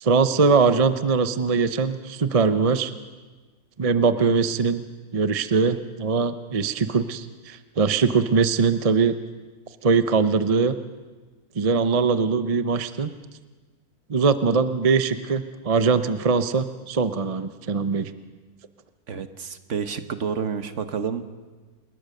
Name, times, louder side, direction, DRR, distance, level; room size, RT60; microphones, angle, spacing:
voice 1, 0.0-2.9 3.8-4.8 5.1-9.2 9.8-10.7 11.6-13.1 14.1-18.1, right 5 dB, 30° right, 11 dB, 0.7 m, -21 dB
voice 2, 19.1-21.3, right 6 dB, 55° right, 9 dB, 1.4 m, -29 dB
28.0 x 21.0 x 6.6 m, 1.3 s
omnidirectional pair, 1.6 m